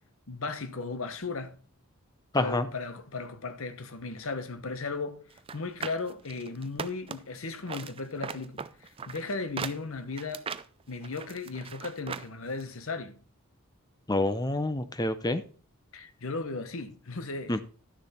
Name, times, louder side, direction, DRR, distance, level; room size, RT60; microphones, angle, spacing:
voice 1, 0.3-1.6 2.3-5.2 5.5-10.5 10.9-13.2 15.9-17.6, left 3 dB, 65° left, 1.0 m, -36 dB
voice 2, 2.3-2.7 14.1-15.4 17.5-17.6, left 2 dB, 15° left, 0.6 m, -27 dB
sound 1, 5.4-7.4 7.7-12.3 12.6-12.7, right 6 dB, 25° right, 0.4 m, -39 dB
11.5 x 6.9 x 4.2 m
head